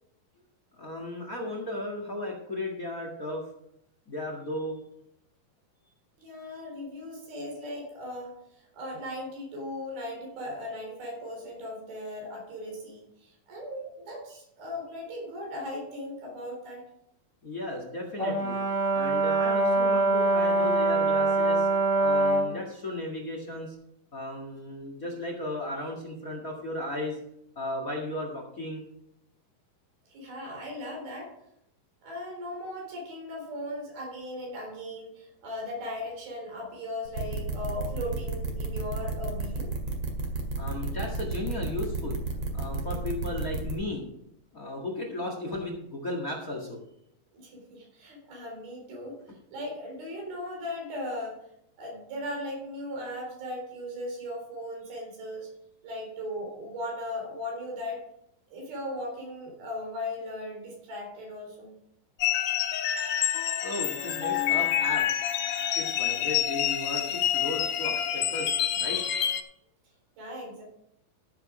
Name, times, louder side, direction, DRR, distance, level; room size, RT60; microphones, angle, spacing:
voice 1, 0.7-3.4 4.1-4.8 17.4-18.6 18.9-21.7 22.0-23.7 24.1-27.2 27.5-28.8 40.6-42.2 42.5-44.0 44.5-46.8 63.6-65.0 65.7-69.0, left 1 dB, 35° left, 2 dB, 1.5 m, -35 dB
voice 2, 6.2-8.4 8.7-16.8 30.1-31.3 32.0-39.7 47.3-49.2 49.5-51.4 51.8-55.5 55.8-58.0 58.5-61.7 70.2-70.6, left 1 dB, 75° right, 0 dB, 5.7 m, -37 dB
Brass instrument, 18.2-22.5, right 2 dB, 15° right, 0.9 m, -24 dB
sound 1, 37.1-43.7, right 3 dB, 45° right, 2.7 m, -31 dB
sound 2, 62.2-69.4, left 10 dB, 70° left, 2.5 m, -27 dB
14.0 x 7.6 x 5.0 m, 0.76 s
omnidirectional pair, 4.3 m